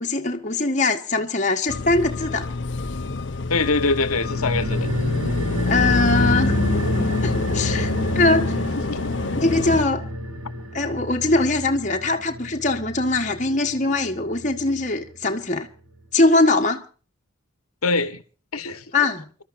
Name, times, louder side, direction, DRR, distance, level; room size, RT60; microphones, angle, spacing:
voice 1, 0.0-2.5 5.6-6.6 7.2-8.6 9.3-10.1 10.7-15.7 16.1-16.8 18.9-19.2, left 2 dB, 35° left, 1.4 m, -21 dB
sound 1, 1.7-9.8, left 3 dB, 55° left, 0.8 m, -26 dB
voice 2, 3.5-4.9 8.9-9.0 17.8-18.2 18.5-18.8, left 3 dB, 85° left, 1.3 m, -23 dB
sound 2, 4.1-15.0 15.2-15.3, equal, 85° right, 2.6 m, -28 dB
29.0 x 13.0 x 2.6 m
head